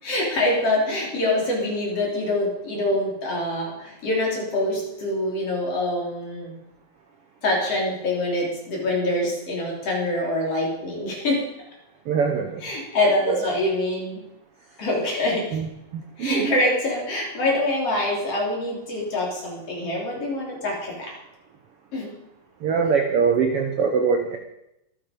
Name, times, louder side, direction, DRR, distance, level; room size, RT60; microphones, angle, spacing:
voice 1, 0.0-6.6 7.4-11.5 12.6-14.2 14.8-15.6 16.2-21.1 21.9-22.1, left 1 dB, 40° left, -2 dB, 4.6 m, -25 dB
voice 2, 12.1-12.6 15.5-15.6 15.9-16.6 22.6-24.4, right 5 dB, 80° right, 5 dB, 1.3 m, -22 dB
25.0 x 8.7 x 5.3 m, 0.85 s
omnidirectional pair, 4.1 m